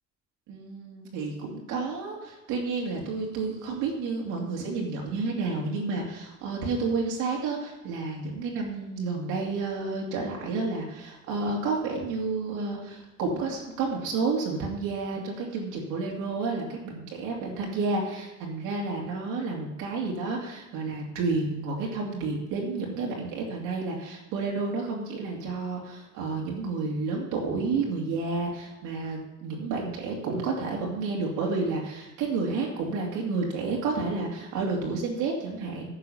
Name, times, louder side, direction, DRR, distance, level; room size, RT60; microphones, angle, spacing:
voice 1, 0.5-36.0, right 4 dB, 85° right, -2 dB, 2.7 m, -30 dB
10.0 x 6.7 x 5.7 m, 0.98 s
cardioid pair, 155°, 30 cm